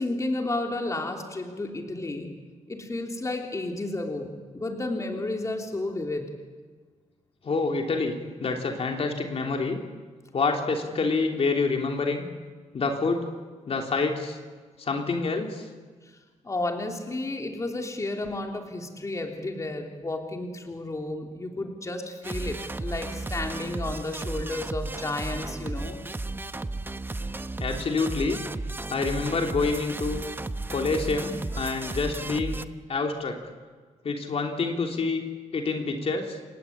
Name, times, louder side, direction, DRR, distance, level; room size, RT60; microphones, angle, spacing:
voice 1, 0.0-2.3 2.7-6.3 16.4-26.0, left 2 dB, 25° left, 2 dB, 3.5 m, -32 dB
voice 2, 7.4-9.8 10.3-12.2 12.7-13.2 13.7-14.4 14.8-15.7 27.6-28.4 28.9-30.3 30.7-32.6 32.9-33.4 34.0-35.2 35.5-36.4, left 4 dB, 50° left, 2 dB, 3.3 m, -27 dB
sound 1, 22.2-32.7, right 2 dB, 15° right, 1.0 m, -34 dB
29.5 x 18.0 x 8.8 m, 1.5 s
cardioid pair, 115°, 13 cm